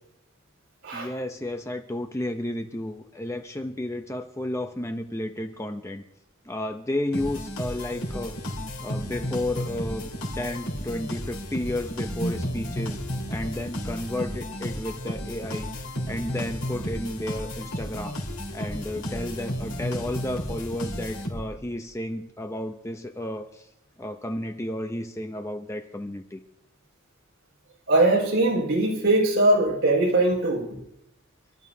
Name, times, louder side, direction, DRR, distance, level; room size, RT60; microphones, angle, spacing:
voice 1, 0.9-6.0 6.5-8.4 8.8-13.0 13.3-15.7 16.1-18.2 18.5-23.7 24.0-26.4, left 1 dB, 15° left, 6 dB, 0.6 m, -32 dB
sound 1, 7.1-21.7, equal, 80° left, 4.3 m, -33 dB
voice 2, 27.9-30.7, right 2 dB, 50° right, -3 dB, 5.3 m, -21 dB
28.0 x 13.0 x 2.8 m, 0.78 s
head